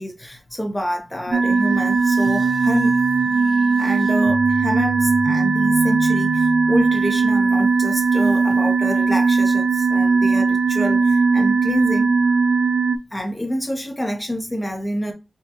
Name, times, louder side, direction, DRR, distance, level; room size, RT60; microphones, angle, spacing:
voice 1, 0.0-12.2 13.1-15.1, equal, 15° left, 1.3 m, -27 dB
sound 1, 1.3-7.2, left 4 dB, 85° left, 0.6 m, -32 dB
sound 2, 1.3-13.0, right 4 dB, 65° right, 0.3 m, -18 dB
4.4 x 2.5 x 2.9 m
cardioid pair, 55°, 0 cm